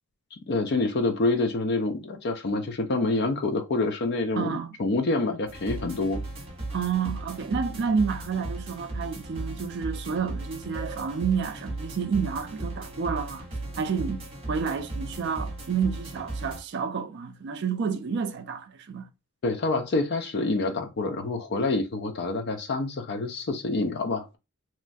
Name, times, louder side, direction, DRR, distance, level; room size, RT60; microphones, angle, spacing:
voice 1, 0.5-4.5 4.8-6.2 19.4-24.4, left 3 dB, 50° left, 0.4 m, -27 dB
voice 2, 4.4-4.7 6.7-13.4 13.8-14.2 14.5-19.1, right 6 dB, 50° right, 0.3 m, -29 dB
sound 1, 5.5-16.6, right 2 dB, 25° right, 0.9 m, -36 dB
3.0 x 2.3 x 2.5 m
head